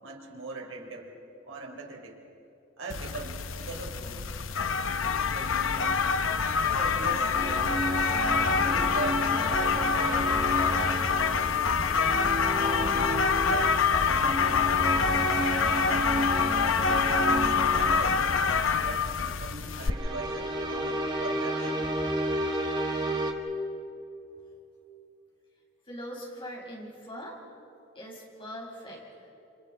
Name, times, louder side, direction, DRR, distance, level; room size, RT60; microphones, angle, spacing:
voice 1, 0.0-1.1 1.4-2.2 2.8-4.3 5.3-6.0 6.5-7.7 8.4-10.8 12.8-14.6 15.0-16.2 16.6-17.2 17.7-18.3 18.8-21.9, right 2 dB, 85° right, 1 dB, 3.8 m, -40 dB
sound 1, 2.9-19.9, left 5 dB, 85° left, 0.8 m, -26 dB
sound 2, 7.0-19.0 19.8-23.3, right 1 dB, 20° right, 1.7 m, -32 dB
voice 2, 25.9-27.4 28.0-29.3, equal, 25° left, -3 dB, 5.4 m, -41 dB
30.0 x 29.0 x 4.4 m, 3.0 s
head